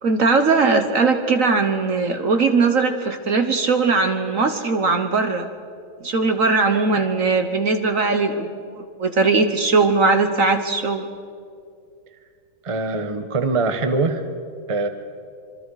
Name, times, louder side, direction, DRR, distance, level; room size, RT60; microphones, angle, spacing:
voice 1, 0.0-5.5 6.0-11.1, right 4 dB, 50° right, 7 dB, 1.3 m, -19 dB
voice 2, 12.6-14.2 14.7-14.9, right 3 dB, 20° right, 7 dB, 0.9 m, -22 dB
26.5 x 24.0 x 4.9 m, 2.3 s
omnidirectional pair, 2.1 m